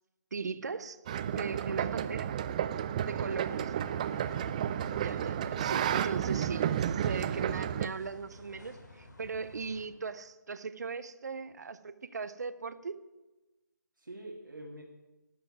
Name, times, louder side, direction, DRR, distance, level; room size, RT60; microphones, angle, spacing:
voice 1, 0.3-1.0 1.3-2.3 3.1-3.5 5.0-13.0, right 5 dB, 55° right, 13 dB, 0.8 m, -38 dB
sound 1, 1.1-7.9, right 9 dB, 20° right, 0.4 m, -32 dB
voice 2, 3.1-4.5 14.0-14.8, right 1 dB, 80° right, -1 dB, 2.2 m, -48 dB
sound 2, 3.4-9.9, left 2 dB, 65° left, 2.8 m, -52 dB
12.0 x 6.8 x 9.3 m, 1.1 s
figure-of-eight pair, 150°, 11 cm